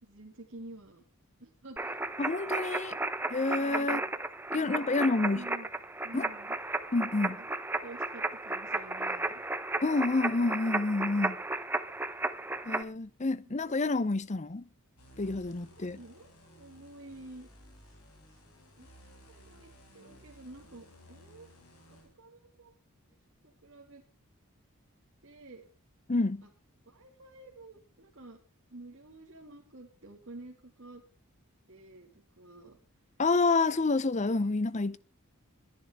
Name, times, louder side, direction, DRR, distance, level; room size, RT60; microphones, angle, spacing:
voice 1, 0.0-1.0 1.4-2.0 3.6-4.1 4.5-5.7 6.0-6.6 7.4-9.4 13.4-13.5 15.7-17.5 17.8-18.0 18.3-18.4 18.8-18.9 19.3-21.5 21.9-22.7 23.4-24.0 25.2-25.7 26.4-26.5 26.9-28.4 28.7-31.0 31.7-32.8, right 2 dB, 55° right, 2.1 m, -50 dB
sound 1, 1.8-12.8, right 2 dB, 10° right, 0.8 m, -34 dB
voice 2, 2.2-3.0 3.3-4.0 4.5-5.4 6.1-6.3 6.9-7.4 9.8-11.4 12.7-14.7 15.2-16.0 26.1-26.4 33.2-35.0, left 3 dB, 30° left, 0.6 m, -28 dB
sound 2, 15.0-22.1, equal, 85° left, 5.1 m, -56 dB
22.0 x 10.5 x 3.6 m
head